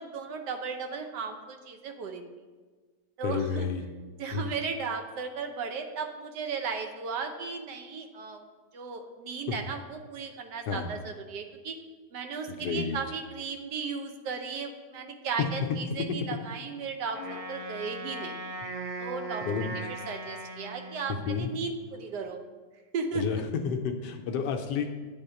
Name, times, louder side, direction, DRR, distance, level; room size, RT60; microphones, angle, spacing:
voice 1, 0.0-2.3 3.2-3.7 4.2-8.4 8.7-11.8 12.1-18.4 19.0-19.4 20.1-22.4 22.9-23.3, right 5 dB, 80° right, 5 dB, 1.4 m, -35 dB
voice 2, 3.2-3.8 4.3-4.5 9.5-9.6 10.7-10.9 12.5-13.0 15.4-15.5 16.0-16.2 19.5-19.9 21.1-21.5 23.1-24.9, left 6 dB, 80° left, 4 dB, 1.3 m, -30 dB
Wind instrument woodwind instrument, 17.1-21.5, right 2 dB, 45° right, 0.4 m, -39 dB
8.9 x 3.6 x 6.9 m, 1.4 s
omnidirectional pair, 1.8 m